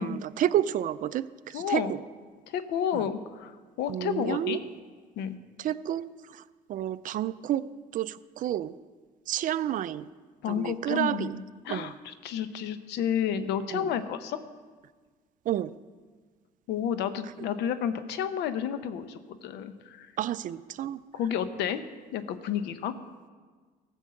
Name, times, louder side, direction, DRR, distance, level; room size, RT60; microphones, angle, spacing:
voice 1, 0.0-2.0 2.9-3.0 3.9-4.6 5.6-6.4 6.7-7.7 7.9-8.7 9.3-10.1 10.5-11.4 11.7-11.9 13.7-13.9 15.5-15.7 20.2-21.0, right 11 dB, 50° right, 16 dB, 0.4 m, -30 dB
voice 2, 1.5-1.9 2.5-4.6 5.2-5.4 10.4-14.4 16.7-20.1 21.1-21.8 22.1-22.9, left 8 dB, 85° left, 11 dB, 0.8 m, -31 dB
14.5 x 5.4 x 7.6 m, 1.5 s
cardioid pair, 110°, 17 cm